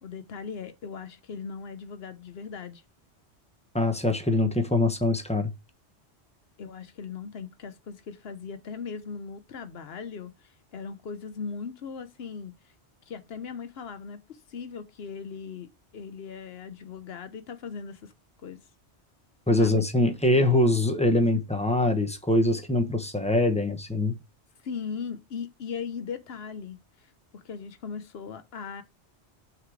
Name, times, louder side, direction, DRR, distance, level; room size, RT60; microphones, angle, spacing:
voice 1, 0.0-2.8 6.6-10.3 10.7-12.5 13.1-18.1 18.4-18.6 19.6-19.9 24.6-26.8 27.3-28.8, left 6 dB, 65° left, 1.1 m, -38 dB
voice 2, 3.7-5.5 19.5-24.2, left 1 dB, 5° left, 0.9 m, -23 dB
6.2 x 3.9 x 4.7 m
omnidirectional pair, 1.1 m